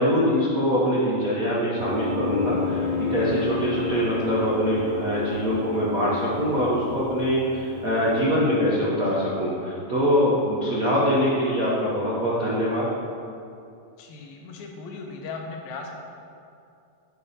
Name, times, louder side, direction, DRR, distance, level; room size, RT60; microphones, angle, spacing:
voice 1, 0.0-12.9, equal, 90° right, -7 dB, 0.7 m, -23 dB
Piano, 1.8-8.2, left 6 dB, 65° right, 1.4 m, -32 dB
Bowed string instrument, 2.2-7.1, equal, 60° left, 0.9 m, -38 dB
voice 2, 14.0-16.0, left 4 dB, 80° left, 1 dB, 2.2 m, -37 dB
9.0 x 5.3 x 4.2 m, 2.5 s
omnidirectional pair, 3.3 m